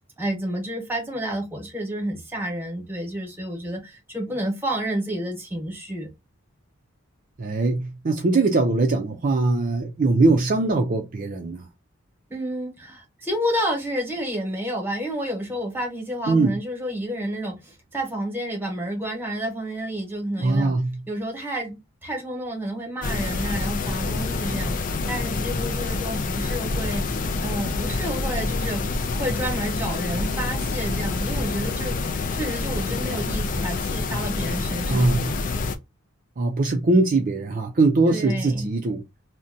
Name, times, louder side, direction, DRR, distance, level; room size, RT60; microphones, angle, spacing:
voice 1, 0.2-6.1 12.3-20.8 21.1-24.8 25.1-28.8 29.2-32.0 32.3-35.1 38.1-38.7, right 1 dB, 10° right, 1.0 m, -30 dB
voice 2, 7.4-11.7 16.3-16.6 20.4-20.9 34.9-35.3 36.4-39.0, right 3 dB, 40° right, 0.4 m, -21 dB
sound 1, 23.0-35.8, left 3 dB, 40° left, 0.4 m, -27 dB
2.6 x 2.2 x 3.8 m
head